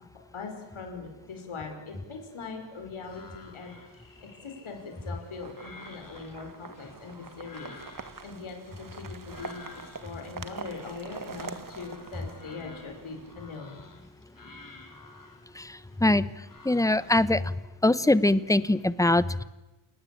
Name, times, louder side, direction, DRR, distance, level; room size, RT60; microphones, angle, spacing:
voice 1, 0.3-3.8 4.2-9.6 10.0-13.8, left 4 dB, 85° left, 4 dB, 5.7 m, -41 dB
sound 1, 3.0-17.3, left 4 dB, 45° left, 4.0 m, -52 dB
sound 2, 5.3-13.3, right 4 dB, 45° right, 1.9 m, -44 dB
voice 2, 15.6-16.3 16.6-17.5 17.8-19.4, left 2 dB, 5° left, 16 dB, 0.9 m, -23 dB
29.0 x 18.0 x 8.7 m, 1.0 s
wide cardioid pair, 90°, 47 cm